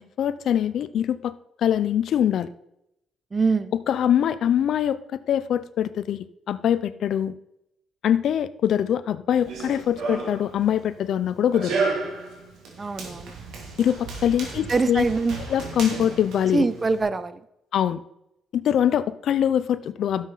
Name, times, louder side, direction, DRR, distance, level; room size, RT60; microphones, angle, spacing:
voice 1, 0.2-1.3 1.6-2.5 3.9-7.3 8.0-11.8 13.8-15.0 15.5-16.6 17.7-18.0 18.5-20.3, left 9 dB, 70° left, 15 dB, 0.5 m, -23 dB
voice 2, 3.3-3.7 12.8-13.4 14.7-15.4 16.5-17.4, right 4 dB, 30° right, 14 dB, 0.7 m, -24 dB
Run, 9.3-17.0, right 4 dB, 80° right, 2.8 m, -33 dB
11.5 x 7.4 x 4.0 m, 0.82 s
cardioid pair, 90°, 0 cm